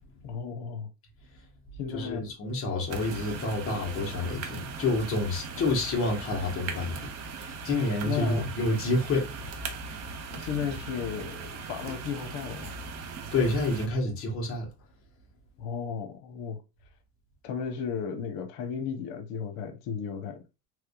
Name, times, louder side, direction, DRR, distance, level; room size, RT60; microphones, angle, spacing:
voice 1, 0.2-0.9 1.8-2.3 5.6-5.7 8.0-8.5 10.3-12.7 15.6-16.6 17.4-20.4, left 7 dB, 85° left, 0.9 m, -34 dB
voice 2, 1.9-7.1 7.3-9.3 13.3-14.7, left 2 dB, 30° left, 1.1 m, -28 dB
sound 1, 2.9-13.9, right 4 dB, 40° right, 0.6 m, -39 dB
3.5 x 3.1 x 2.2 m
cardioid pair, 160°, 44 cm